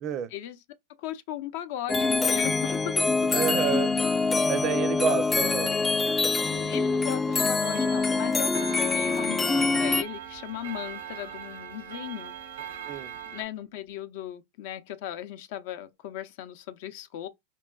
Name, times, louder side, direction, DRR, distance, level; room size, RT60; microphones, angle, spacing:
voice 1, 0.0-0.3 3.3-4.0 4.5-5.8 12.9-13.1, right 9 dB, 45° right, 0.5 m, -29 dB
voice 2, 1.0-3.0 6.5-12.3 13.3-17.3, left 11 dB, 65° left, 0.5 m, -37 dB
sound 1, 1.9-10.0, left 3 dB, 15° left, 0.3 m, -25 dB
Clock, 7.6-13.4, right 9 dB, 85° right, 0.8 m, -41 dB
4.4 x 3.0 x 2.3 m
hypercardioid pair, 100°, 0 cm